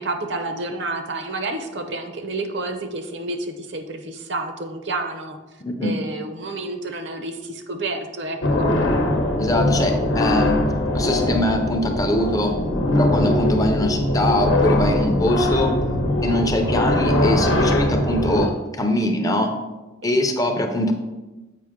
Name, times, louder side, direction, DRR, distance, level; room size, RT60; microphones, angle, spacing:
voice 1, 0.0-5.4 5.8-8.7, right 2 dB, 60° right, 7 dB, 0.7 m, -29 dB
voice 2, 5.6-6.0 9.4-12.6 12.9-15.8 16.2-19.6 20.0-20.9, left 1 dB, 15° left, 5 dB, 0.5 m, -23 dB
sound 1, 8.4-18.5, left 1 dB, 70° left, 0.9 m, -21 dB
7.6 x 5.0 x 3.7 m, 1.1 s
head